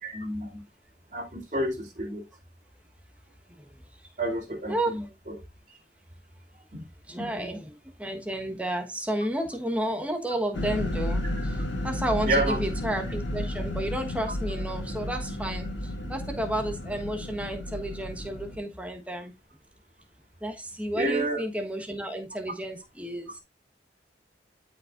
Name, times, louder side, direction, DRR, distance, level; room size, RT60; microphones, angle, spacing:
voice 1, 0.0-0.6 1.1-2.2 4.2-5.0 6.7-6.8 7.2-7.3 12.3-12.6 20.9-21.4, right 1 dB, 40° right, 2.8 m, -29 dB
voice 2, 3.6-4.1 4.7-5.1 7.1-19.3 20.4-23.4, right 1 dB, 5° right, 1.3 m, -32 dB
sound 1, 10.5-18.6, left 1 dB, 85° left, 1.8 m, -32 dB
13.0 x 5.2 x 2.5 m
head